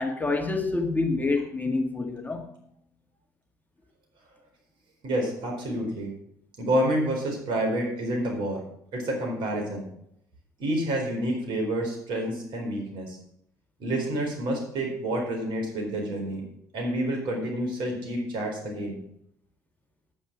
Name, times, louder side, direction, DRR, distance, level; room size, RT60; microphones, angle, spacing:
voice 1, 0.0-2.5, left 3 dB, 20° left, 1.7 m, -27 dB
voice 2, 5.0-6.1 6.6-8.6 8.9-9.9 10.6-13.2 13.8-16.4 16.7-19.0, right 1 dB, 55° right, 4.3 m, -28 dB
9.9 x 9.0 x 6.1 m
figure-of-eight pair, 50°, 10 cm